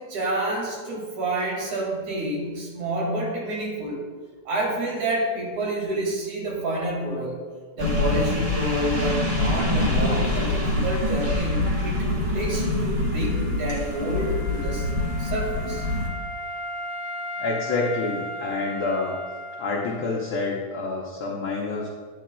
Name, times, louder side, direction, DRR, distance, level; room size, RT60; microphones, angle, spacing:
voice 1, 0.0-4.0 4.4-7.4 7.8-12.1 12.3-14.9 15.2-15.9, right 1 dB, 75° right, -3 dB, 3.5 m, -28 dB
sound 1, 7.8-16.1, left 2 dB, 30° right, 0.6 m, -25 dB
Wind instrument woodwind instrument, 12.7-20.5, equal, 55° right, 2.8 m, -37 dB
voice 2, 17.4-19.2 19.6-21.9, left 3 dB, 70° left, -2 dB, 1.3 m, -27 dB
10.5 x 8.5 x 2.3 m, 1.5 s
omnidirectional pair, 3.4 m